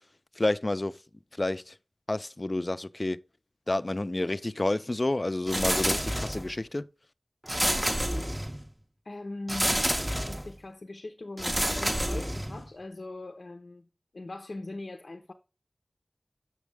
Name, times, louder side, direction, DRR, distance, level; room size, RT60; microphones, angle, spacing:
voice 1, 0.4-1.0 1.4-1.8 2.1-3.2 3.7-6.9, left 2 dB, 40° left, 0.4 m, -29 dB
sound 1, 5.5-6.6 7.5-8.7 9.5-10.5 11.4-12.7, equal, 10° right, 0.5 m, -29 dB
voice 2, 9.0-9.9 10.1-13.9 14.1-15.3, left 2 dB, 85° left, 0.6 m, -40 dB
7.3 x 6.1 x 3.3 m
wide cardioid pair, 50°, 0 cm